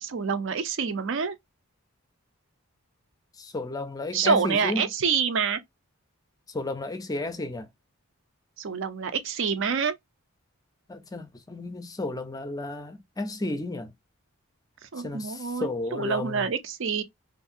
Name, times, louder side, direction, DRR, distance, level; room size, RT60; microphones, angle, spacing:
voice 1, 0.0-1.4 4.1-5.6 8.6-9.9 14.9-17.0, right 6 dB, 55° right, 0.5 m, -27 dB
voice 2, 3.4-4.8 6.5-7.7 10.9-13.9 15.0-16.5, left 2 dB, 15° left, 0.5 m, -33 dB
2.7 x 2.5 x 2.5 m
head